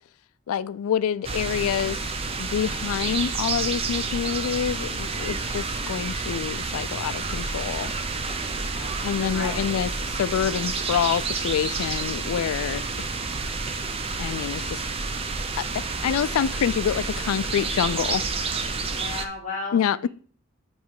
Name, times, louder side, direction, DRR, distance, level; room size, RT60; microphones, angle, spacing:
voice 1, 0.5-2.1 2.4-7.9 9.0-13.2 14.2-14.8 15.6-18.2 19.7-20.1, left 8 dB, 85° left, 0.3 m, -27 dB
sound 1, 1.2-19.3, right 4 dB, 25° right, 0.5 m, -29 dB
voice 2, 8.3-9.7 18.8-20.1, left 3 dB, 35° left, 1.4 m, -37 dB
8.1 x 3.1 x 4.7 m
head